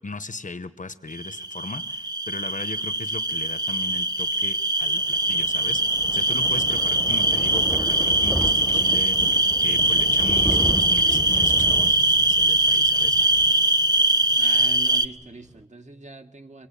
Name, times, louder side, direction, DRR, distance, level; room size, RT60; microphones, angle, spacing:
voice 1, 0.0-13.2, left 3 dB, 85° left, 13 dB, 1.0 m, -38 dB
sound 1, 1.1-15.1, right 1 dB, 30° right, 1.0 m, -22 dB
Thunder, 4.9-14.3 14.7-14.9 15.2-15.3 15.5-15.6, equal, 5° right, 0.8 m, -33 dB
sound 2, 8.1-9.0 9.3-9.6 9.9-10.2 10.5-12.4 12.7-13.0 13.3-13.5, right 1 dB, 85° right, 7.3 m, -54 dB
voice 2, 14.4-16.7, right 2 dB, 70° right, 6 dB, 1.9 m, -42 dB
26.0 x 19.0 x 8.5 m, 0.95 s
wide cardioid pair, 40°, 13 cm